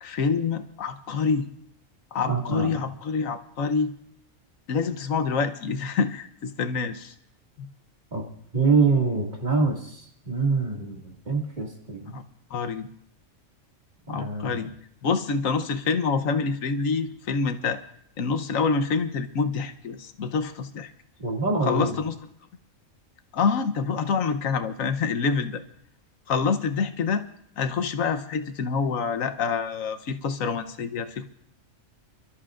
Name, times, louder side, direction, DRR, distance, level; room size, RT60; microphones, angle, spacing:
voice 1, 0.0-1.5 2.1-3.9 4.7-7.1 12.1-12.2 12.5-12.9 14.1-14.7 15.0-17.8 18.2-20.9 21.6-22.1 23.3-25.6 26.3-27.3 27.6-31.3, left 5 dB, 85° left, 9 dB, 1.3 m, -26 dB
voice 2, 2.3-2.8 8.1-8.2 8.5-11.0 11.3-12.2 14.1-14.7 21.2-22.0, right 4 dB, 35° right, -2 dB, 2.4 m, -25 dB
28.5 x 13.0 x 2.5 m, 0.69 s
omnidirectional pair, 1.4 m